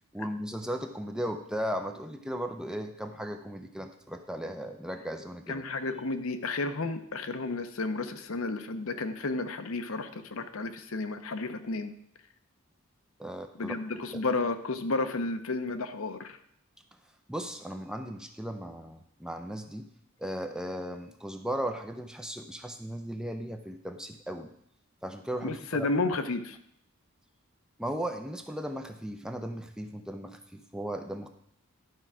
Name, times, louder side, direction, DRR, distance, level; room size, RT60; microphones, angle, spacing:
voice 1, 0.1-5.6 13.2-13.7 14.1-14.2 17.3-19.9 20.2-24.5 25.0-25.9 27.8-31.3, equal, 5° right, 6 dB, 0.6 m, -36 dB
voice 2, 5.5-11.9 13.5-16.4 25.4-26.6, left 3 dB, 70° left, 8 dB, 0.8 m, -32 dB
11.5 x 4.7 x 6.0 m, 0.70 s
head